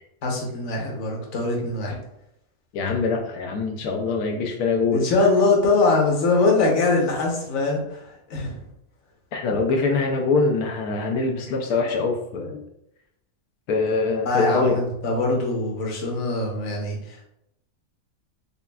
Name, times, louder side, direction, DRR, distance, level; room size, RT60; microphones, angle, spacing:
voice 1, 0.2-2.0 4.9-8.0 8.3-8.6 9.5-9.6 14.2-17.2, left 3 dB, 55° left, -1 dB, 1.2 m, -22 dB
voice 2, 2.7-5.3 9.3-12.6 13.7-14.8, left 3 dB, 85° left, 2 dB, 1.1 m, -24 dB
6.7 x 2.3 x 2.3 m, 0.81 s
omnidirectional pair, 1.6 m